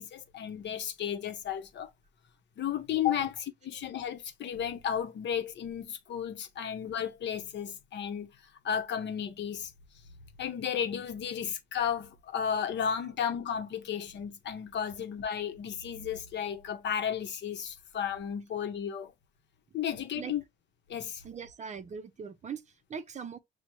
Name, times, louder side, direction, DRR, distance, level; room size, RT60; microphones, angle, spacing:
voice 1, 0.0-1.9 2.6-8.3 8.6-9.7 10.4-19.1 19.7-20.4 20.9-21.2, left 8 dB, 65° left, 0.7 m, -33 dB
voice 2, 21.2-23.4, right 6 dB, 35° right, 0.5 m, -41 dB
5.9 x 2.0 x 2.9 m
cardioid pair, 90°, 20 cm